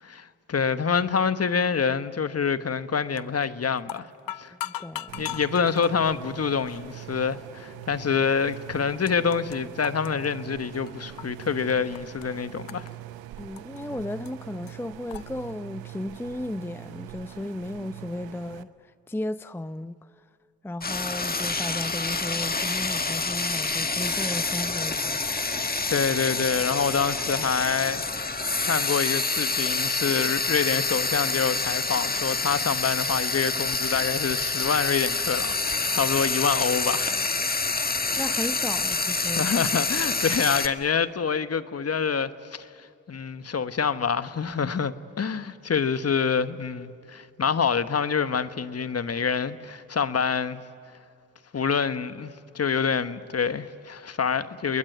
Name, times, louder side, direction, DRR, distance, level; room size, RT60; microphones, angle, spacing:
voice 1, 0.1-4.1 4.4-4.5 5.2-12.9 25.9-28.0 28.6-37.1 39.3-50.6 51.5-54.8, left 6 dB, 45° left, 1.3 m, -26 dB
sound 1, 3.2-3.5 3.8-5.9 6.7-6.9 7.6-7.7 8.5-8.6 8.8-9.6 9.8-11.4 11.7-12.2 12.7-13.8 14.3-14.4 14.7-14.8 15.1-15.2, left 13 dB, 70° left, 0.8 m, -38 dB
voice 2, 4.5-5.3 13.4-20.2 20.6-25.7 38.2-39.5, left 1 dB, 5° left, 0.6 m, -35 dB
sound 2, 5.1-18.6, right 14 dB, 85° right, 0.9 m, -43 dB
Frying (food), 20.8-40.7, left 3 dB, 25° left, 1.8 m, -27 dB
29.5 x 21.0 x 9.3 m
supercardioid pair, 45°, 36 cm